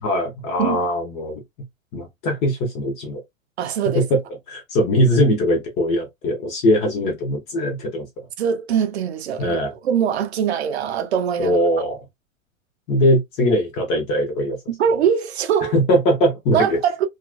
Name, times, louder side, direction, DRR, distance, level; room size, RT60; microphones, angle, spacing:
voice 1, 0.0-1.4 1.9-3.2 3.9-4.0 4.5-8.3 9.4-9.7 11.4-12.0 12.9-14.6 15.7-16.8, equal, 15° left, 0.4 m, -20 dB
voice 2, 3.6-4.1 8.4-11.6 14.7-15.8 16.5-17.1, right 8 dB, 50° right, 0.5 m, -22 dB
2.8 x 2.4 x 2.4 m
figure-of-eight pair, 100°, 41 cm